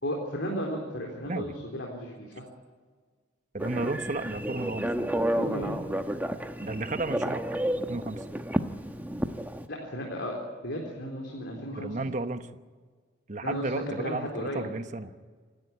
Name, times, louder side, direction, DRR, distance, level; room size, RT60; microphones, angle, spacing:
voice 1, 0.0-2.4 5.3-5.8 9.7-10.4 10.6-12.0 13.4-14.6, equal, 75° left, -1 dB, 3.9 m, -34 dB
voice 2, 3.5-5.0 6.6-7.5 7.9-8.2 11.8-12.5 13.3-15.1, right 2 dB, 40° right, 9 dB, 1.1 m, -33 dB
Telephone, 3.6-9.7, right 1 dB, 10° right, 1.0 m, -31 dB
28.0 x 12.5 x 9.8 m, 1.5 s
head